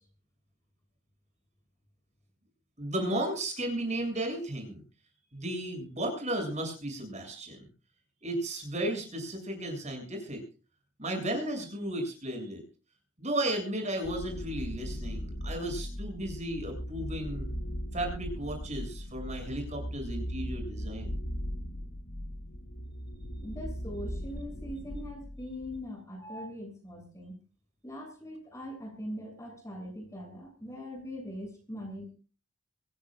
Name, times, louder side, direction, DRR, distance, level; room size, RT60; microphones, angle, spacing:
voice 1, 2.8-4.8 5.3-7.6 8.2-10.4 11.0-12.6 13.2-17.5 17.9-21.1, right 1 dB, 35° right, 4 dB, 7.4 m, -34 dB
sound 1, 14.0-25.8, equal, 65° left, 7.5 m, -38 dB
voice 2, 23.4-27.4 27.8-32.1, equal, 15° left, 2 dB, 7.5 m, -41 dB
25.0 x 17.0 x 2.5 m, 0.36 s
head